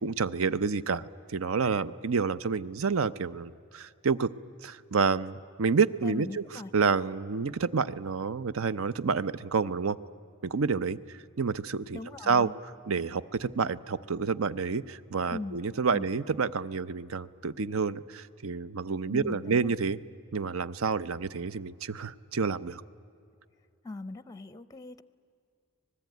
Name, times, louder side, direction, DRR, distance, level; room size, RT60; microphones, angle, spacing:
voice 1, 0.0-4.3 4.6-6.4 6.7-10.0 10.4-12.5 12.9-20.0 20.3-22.8, right 5 dB, 65° right, 17 dB, 0.6 m, -29 dB
voice 2, 6.0-6.7 11.9-12.5 15.3-15.6 15.9-16.1 19.1-19.7 23.8-25.0, left 2 dB, 15° left, 15 dB, 0.6 m, -39 dB
25.5 x 20.0 x 9.3 m, 2.6 s
head